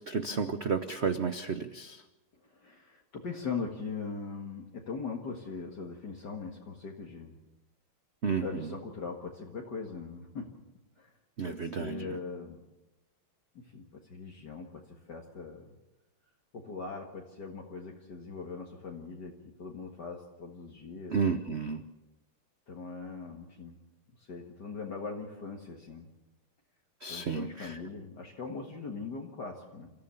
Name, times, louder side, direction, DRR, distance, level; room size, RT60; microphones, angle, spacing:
voice 1, 0.0-2.0 8.2-8.5 11.4-12.1 21.1-21.8 27.0-27.8, right 5 dB, 70° right, 9 dB, 0.6 m, -32 dB
voice 2, 2.4-7.3 8.4-10.5 11.0-11.1 11.4-12.6 13.7-15.7 16.5-21.2 22.7-23.8 24.2-26.1 27.1-29.9, left 4 dB, 50° left, 0 dB, 2.3 m, -40 dB
28.0 x 14.5 x 7.1 m, 0.99 s
omnidirectional pair, 2.4 m